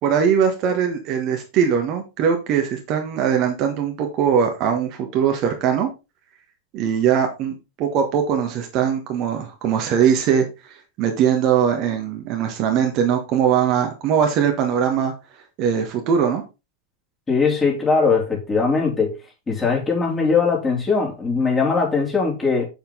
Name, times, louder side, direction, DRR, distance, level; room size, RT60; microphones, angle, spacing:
voice 1, 0.0-5.9 6.7-15.1 15.6-16.4, right 8 dB, 40° right, 1.6 m, -21 dB
voice 2, 17.3-19.2 19.5-22.7, left 4 dB, 15° left, 3.7 m, -20 dB
7.7 x 7.1 x 3.9 m
figure-of-eight pair, 90°, 0 cm